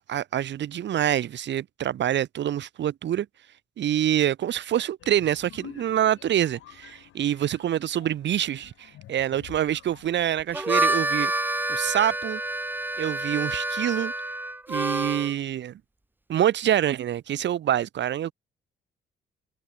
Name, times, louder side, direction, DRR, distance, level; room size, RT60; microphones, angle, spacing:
voice 1, 0.0-3.3 3.8-11.3 11.7-12.4 13.0-14.1 14.7-15.8 16.3-18.3, right 11 dB, 65° right, 1.4 m, -26 dB
sound 1, 5.0-10.2, left 14 dB, 85° left, 7.9 m, -49 dB
Harmonica, 10.4-15.3, right 1 dB, 10° right, 3.4 m, -28 dB
cardioid pair, 90°, 20 cm